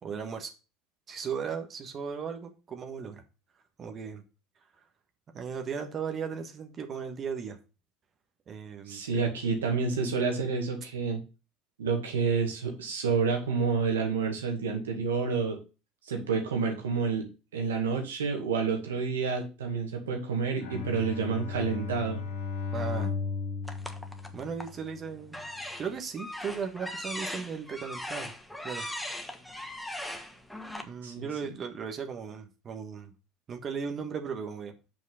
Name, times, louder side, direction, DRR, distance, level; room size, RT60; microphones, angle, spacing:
voice 1, 0.0-0.5 1.1-3.2 3.8-4.2 5.3-7.6 8.5-9.0 22.7-23.1 24.3-25.4 25.8-28.3 28.6-28.9 30.8-33.1 33.5-34.7, right 6 dB, 40° right, 1.4 m, -36 dB
voice 2, 8.9-11.2 11.8-15.6 16.1-17.3 17.5-22.2 31.0-31.3, right 5 dB, 90° right, 2.0 m, -29 dB
Bowed string instrument, 20.6-25.0, left 5 dB, 75° left, 1.8 m, -35 dB
sound 1, 23.6-24.8 25.3-30.8, left 1 dB, 5° left, 1.3 m, -39 dB
6.3 x 5.1 x 5.5 m
hypercardioid pair, 75°, 0 cm